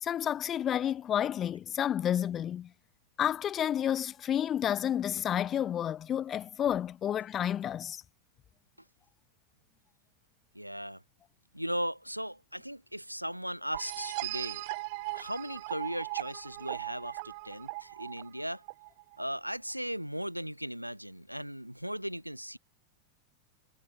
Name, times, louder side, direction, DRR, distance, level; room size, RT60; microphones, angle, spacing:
voice 1, 0.0-2.7 3.2-8.0, left 10 dB, 25° left, 0.6 m, -30 dB
voice 2, 10.5-11.0 11.5-14.6 15.1-18.6 19.2-22.6, equal, 90° right, 0.9 m, -37 dB
sound 1, 13.7-19.2, right 27 dB, 50° right, 1.4 m, -39 dB
figure-of-eight pair, 90°, 0 cm